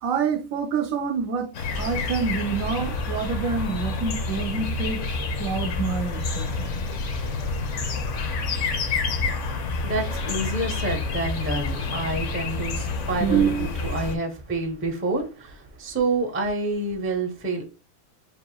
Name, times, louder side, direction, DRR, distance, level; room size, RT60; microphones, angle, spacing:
voice 1, 0.0-5.0 5.4-6.8 13.2-13.7 14.1-14.2, right 6 dB, 70° right, 1.0 m, -27 dB
sound 1, 1.5-14.2, left 3 dB, 60° left, 1.0 m, -28 dB
voice 2, 9.8-17.6, right 2 dB, 15° right, 0.4 m, -28 dB
4.8 x 3.5 x 2.3 m
omnidirectional pair, 1.6 m